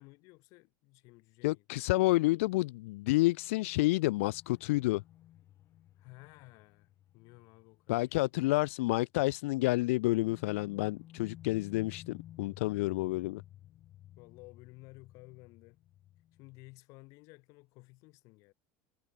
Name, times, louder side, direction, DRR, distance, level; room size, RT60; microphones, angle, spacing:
voice 1, 0.0-1.8 6.0-8.2 13.1-13.4 14.2-15.8 16.3-18.5, left 24 dB, 50° left, 7.0 m, -55 dB
voice 2, 1.4-5.0 7.9-13.4, left 20 dB, 80° left, 0.4 m, -29 dB
sound 1, 3.2-8.6 8.9-9.0 10.2-16.8, left 13 dB, 35° left, 7.6 m, -55 dB
supercardioid pair, 160°, 7 cm